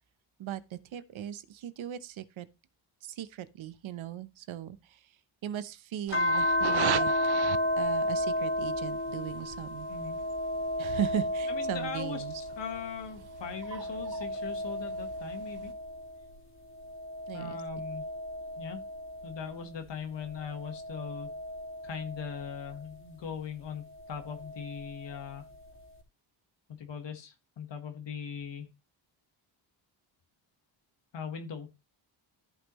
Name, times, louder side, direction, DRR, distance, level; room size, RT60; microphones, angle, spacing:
voice 1, 0.4-2.5 3.1-5.0 5.4-7.4 7.8-9.9 10.8-12.4 17.3-17.6, right 11 dB, 70° right, 0.9 m, -38 dB
sound 1, 6.1-12.8 13.3-16.2 16.8-19.6 20.3-22.8 24.1-25.2, left 1 dB, 25° left, 3.0 m, -33 dB
sound 2, 6.1-15.7, right 13 dB, 55° right, 0.5 m, -41 dB
voice 2, 11.5-15.7 17.3-18.0 18.6-18.8 19.2-21.3 21.8-25.4 26.7-28.7 31.1-31.7, left 7 dB, 60° left, 1.5 m, -40 dB
14.5 x 5.4 x 3.1 m
cardioid pair, 130°, 49 cm